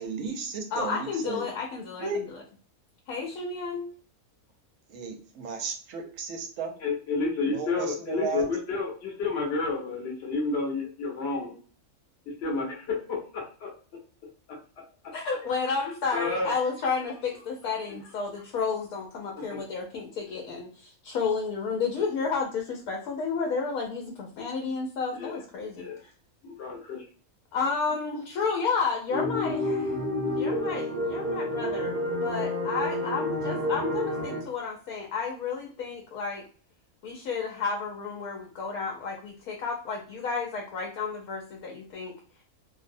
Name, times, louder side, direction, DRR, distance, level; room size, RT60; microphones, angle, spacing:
voice 1, 0.0-1.5 2.0-2.3 4.9-6.7 7.5-8.5, right 5 dB, 70° right, 3 dB, 0.9 m, -34 dB
voice 2, 0.7-2.3 3.1-3.9 15.1-25.9 27.5-29.9 30.4-32.0 32.2-36.4 37.0-42.2, left 5 dB, 85° left, 0 dB, 1.0 m, -31 dB
voice 3, 6.8-11.6 12.3-13.7 16.1-16.5 17.9-18.0 19.5-19.6 25.1-25.4 25.8-26.0 26.4-27.0, left 3 dB, 55° left, -1 dB, 0.9 m, -30 dB
sound 1, 29.1-34.4, left 1 dB, 50° right, 0.6 m, -29 dB
2.6 x 2.0 x 2.5 m, 0.40 s
omnidirectional pair, 1.5 m